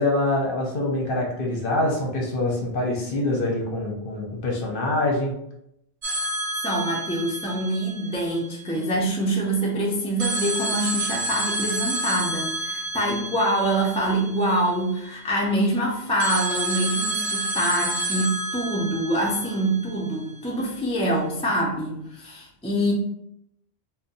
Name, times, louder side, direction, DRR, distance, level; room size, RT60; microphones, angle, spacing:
voice 1, 0.0-5.3, left 2 dB, 55° left, -1 dB, 0.9 m, -25 dB
sound 1, 6.0-8.9 10.2-15.1 16.2-20.4, right 2 dB, 55° right, 0.9 m, -30 dB
voice 2, 6.6-22.9, right 1 dB, 10° left, -3 dB, 0.4 m, -25 dB
2.6 x 2.2 x 3.9 m, 0.77 s
omnidirectional pair, 1.1 m